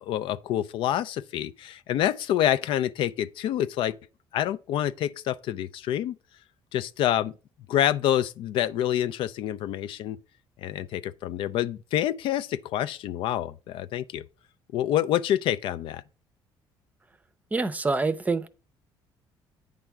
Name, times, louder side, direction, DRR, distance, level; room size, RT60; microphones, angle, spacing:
voice 1, 0.0-3.9 4.3-6.2 6.7-7.3 7.7-10.2 10.6-14.2 14.7-16.0, left 11 dB, 70° left, 0.4 m, -27 dB
voice 2, 17.5-18.5, right 3 dB, 15° right, 0.6 m, -26 dB
8.9 x 3.4 x 6.0 m
cardioid pair, 115°, 9 cm